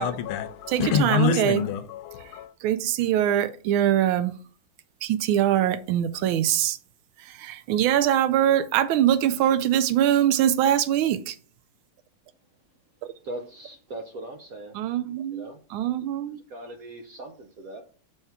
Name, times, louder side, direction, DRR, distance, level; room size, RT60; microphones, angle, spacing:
voice 1, 0.0-2.5, left 6 dB, 85° left, 1.4 m, -26 dB
voice 2, 0.7-1.6 2.6-4.3 5.0-6.8 7.3-11.4 13.0-13.1 14.7-15.4 15.7-16.4, right 11 dB, 85° right, 1.4 m, -23 dB
voice 3, 13.2-14.8 15.3-15.6 16.5-17.8, right 1 dB, 60° right, 0.9 m, -39 dB
5.4 x 3.5 x 5.8 m
omnidirectional pair, 2.2 m